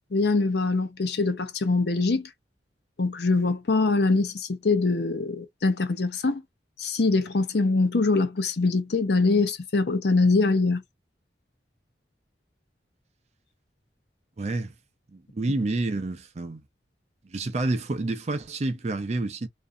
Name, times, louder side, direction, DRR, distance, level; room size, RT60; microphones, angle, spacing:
voice 1, 0.1-2.3 3.0-6.4 6.8-10.8, left 3 dB, 65° left, 0.6 m, -23 dB
voice 2, 14.4-14.7 15.1-16.6 17.3-19.5, right 2 dB, 40° right, 0.4 m, -29 dB
2.6 x 2.3 x 2.5 m
head